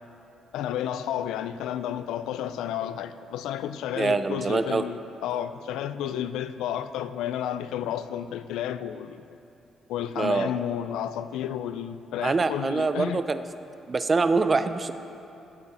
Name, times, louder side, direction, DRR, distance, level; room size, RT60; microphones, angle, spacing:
voice 1, 0.5-9.3 9.9-13.2, left 10 dB, 90° left, 12 dB, 0.4 m, -31 dB
voice 2, 4.0-4.8 10.2-10.5 12.2-13.4 13.9-14.9, right 4 dB, 30° right, 11 dB, 0.5 m, -24 dB
13.5 x 9.1 x 4.2 m, 2.8 s
cardioid pair, 90°, 0 cm